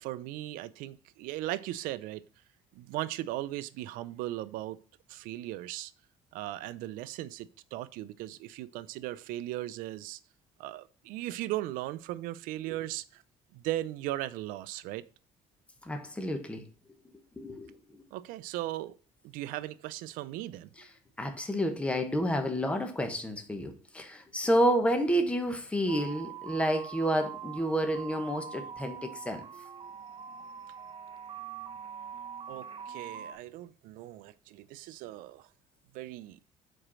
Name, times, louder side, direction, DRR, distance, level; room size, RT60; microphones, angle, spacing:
voice 1, 0.0-2.2 2.7-4.8 5.1-5.9 6.3-10.2 10.6-13.2 13.5-15.1 18.1-18.9 19.2-20.9 32.5-35.5 35.9-36.4, right 15 dB, 85° right, 0.5 m, -37 dB
voice 2, 15.8-16.6 17.4-18.0 20.8-20.9 21.2-29.4, equal, 10° left, 0.9 m, -30 dB
sound 1, 25.9-33.3, right 7 dB, 40° right, 0.8 m, -43 dB
5.0 x 4.3 x 6.1 m
cardioid pair, 130°, 14 cm